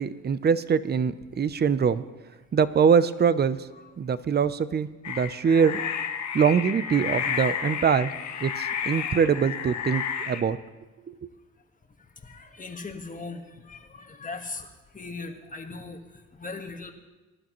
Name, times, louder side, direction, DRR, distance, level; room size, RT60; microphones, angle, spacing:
voice 1, 0.0-2.0 2.5-3.6 4.0-5.8 6.3-8.1 8.4-10.6, right 6 dB, 35° right, 15 dB, 0.6 m, -23 dB
sound 1, 5.0-10.4, left 8 dB, 65° left, 1.3 m, -31 dB
voice 2, 12.2-16.0 16.3-16.9, left 3 dB, 25° left, 4 dB, 1.5 m, -39 dB
22.0 x 11.5 x 3.1 m, 1.2 s
cardioid pair, 90°, 30 cm